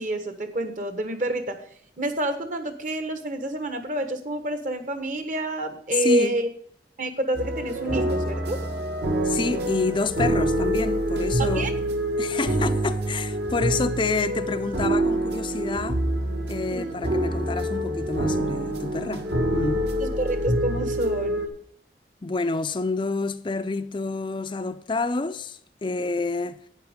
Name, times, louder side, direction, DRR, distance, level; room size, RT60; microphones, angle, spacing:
voice 1, 0.0-1.6 2.0-6.5 7.0-8.6 11.4-11.7 12.6-12.7 16.7-16.9 20.0-21.4, right 1 dB, 45° right, 1.3 m, -28 dB
voice 2, 5.9-6.4 9.2-11.7 12.2-16.0 16.5-19.3 19.5-19.9 22.2-26.6, left 3 dB, 25° left, 0.4 m, -28 dB
sound 1, 7.3-21.5, right 1 dB, 65° right, 1.8 m, -26 dB
11.5 x 9.0 x 3.7 m
head